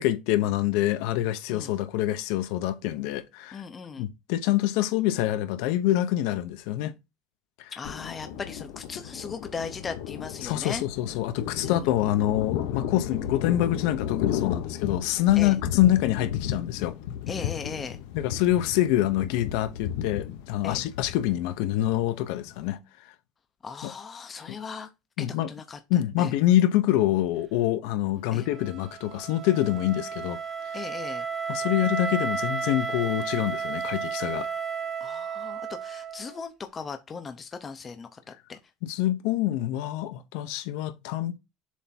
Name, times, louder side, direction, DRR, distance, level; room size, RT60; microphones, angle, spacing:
voice 1, 0.0-3.6 4.0-6.9 7.6-7.7 10.4-16.9 18.1-22.8 23.8-23.9 24.5-24.6 25.2-25.5 25.9-30.4 31.5-34.5 38.8-41.4, left 13 dB, 70° left, 0.8 m, -26 dB
voice 2, 3.5-4.1 7.7-10.8 11.6-11.9 15.4-15.6 17.3-18.0 20.6-20.8 23.6-24.9 25.2-25.8 26.2-26.3 28.3-28.5 30.7-31.3 35.0-38.2 38.5-38.6, left 5 dB, 20° left, 0.7 m, -38 dB
Thunder, 7.8-22.6, left 10 dB, 90° left, 1.1 m, -34 dB
Wind instrument woodwind instrument, 28.4-36.4, right 5 dB, 25° right, 0.9 m, -33 dB
7.3 x 3.5 x 4.3 m
cardioid pair, 175°, 0 cm